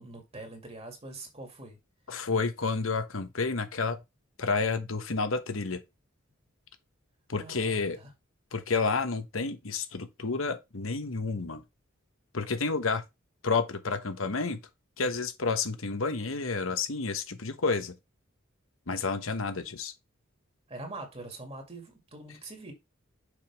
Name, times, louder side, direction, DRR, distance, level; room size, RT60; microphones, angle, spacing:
voice 1, 0.0-1.8 7.4-8.1 20.7-22.7, right 2 dB, 30° right, 2.1 m, -44 dB
voice 2, 2.1-4.0 4.4-5.8 7.3-8.0 8.5-11.6 12.3-13.0 13.4-14.6 15.0-17.9 18.9-19.9, left 4 dB, 80° left, 1.1 m, -30 dB
6.6 x 5.2 x 3.4 m
head